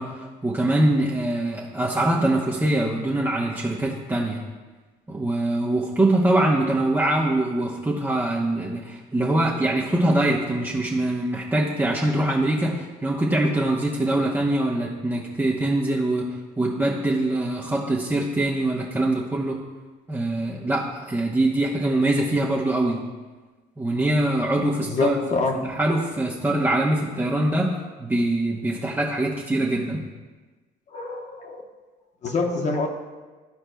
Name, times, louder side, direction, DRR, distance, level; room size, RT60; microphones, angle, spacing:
voice 1, 0.0-4.4 5.1-16.3 16.6-19.6 20.1-23.0 23.8-25.2 25.6-30.0, right 1 dB, 10° right, -5 dB, 0.9 m, -23 dB
voice 2, 24.8-25.7 30.9-31.6 32.2-32.9, left 3 dB, 45° left, 3 dB, 1.1 m, -26 dB
14.5 x 4.8 x 2.3 m, 1.3 s
cardioid pair, 110°, 17 cm